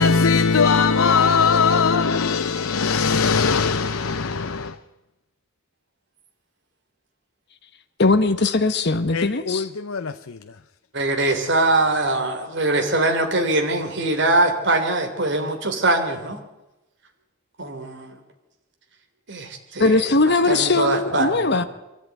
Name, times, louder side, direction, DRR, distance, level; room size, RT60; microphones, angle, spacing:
voice 1, 0.0-4.8 9.1-10.4, left 5 dB, 85° left, 0.8 m, -20 dB
voice 2, 8.0-9.7 19.8-21.6, left 3 dB, 55° left, 1.1 m, -19 dB
voice 3, 10.9-16.4 17.6-18.2 19.3-21.7, right 2 dB, 60° right, 3.3 m, -22 dB
23.0 x 14.5 x 9.3 m
head